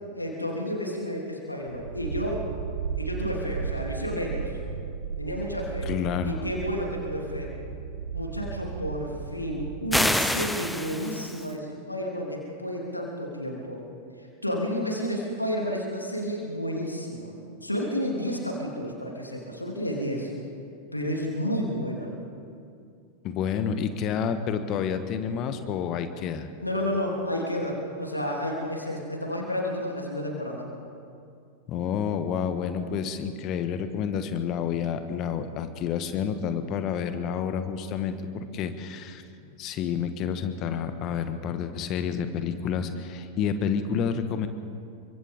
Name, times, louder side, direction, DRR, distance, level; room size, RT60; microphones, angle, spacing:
voice 1, 0.1-2.4 3.0-4.5 5.2-5.9 6.2-7.5 8.1-13.8 14.4-17.3 17.6-20.3 20.9-22.1 26.6-30.7, equal, 85° left, -1 dB, 3.2 m, -31 dB
sound 1, 1.6-10.1, right 6 dB, 70° right, 1.2 m, -35 dB
voice 2, 5.8-6.5 23.2-26.5 31.7-39.2 39.6-44.5, left 7 dB, 35° left, 9 dB, 1.6 m, -29 dB
sound 2, 9.9-11.5, left 1 dB, ahead, 0.9 m, -27 dB
28.5 x 24.5 x 3.8 m, 2.4 s
figure-of-eight pair, 90°, 0 cm